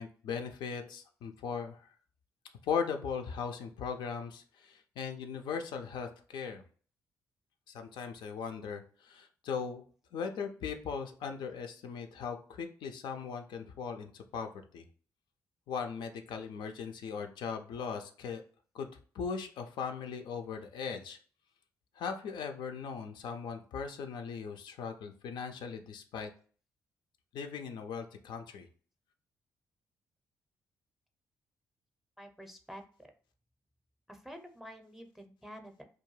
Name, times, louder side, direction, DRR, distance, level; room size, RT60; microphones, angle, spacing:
voice 1, 0.0-1.9 2.6-6.6 7.7-9.8 10.1-14.9 15.7-18.4 18.7-18.9 19.1-21.2 22.0-26.3 27.3-28.7, left 6 dB, 70° left, 5 dB, 0.3 m, -38 dB
voice 2, 32.2-32.8 34.1-35.8, equal, 5° right, 6 dB, 0.6 m, -48 dB
2.3 x 2.1 x 3.1 m, 0.42 s
hypercardioid pair, 45°, 8 cm